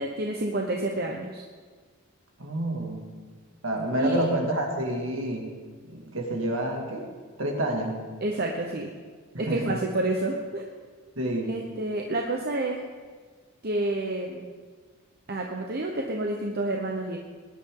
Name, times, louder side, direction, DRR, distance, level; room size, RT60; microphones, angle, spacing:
voice 1, 0.0-1.4 4.0-4.3 8.2-8.9 9.4-10.6 11.4-12.8 13.6-14.5 15.3-17.2, right 2 dB, 45° right, 1 dB, 1.0 m, -29 dB
voice 2, 2.4-3.1 3.6-5.5 5.8-7.1 7.4-8.0 9.3-9.8 11.2-11.6, right 1 dB, 65° right, 1 dB, 2.3 m, -28 dB
20.0 x 11.0 x 3.8 m, 1.5 s
head